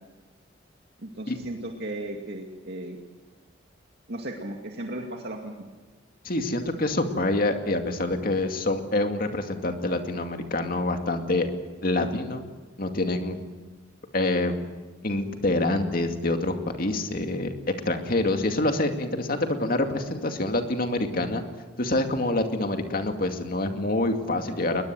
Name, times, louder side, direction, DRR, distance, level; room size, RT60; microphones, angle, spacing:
voice 1, 1.0-3.0 4.1-5.7, right 1 dB, 60° right, 1 dB, 2.3 m, -35 dB
voice 2, 6.2-11.5 11.8-12.4 12.8-13.4 14.1-14.5 15.0-21.4 21.8-24.8, left 2 dB, 50° left, 5 dB, 2.3 m, -26 dB
21.5 x 21.0 x 7.8 m, 1.3 s
head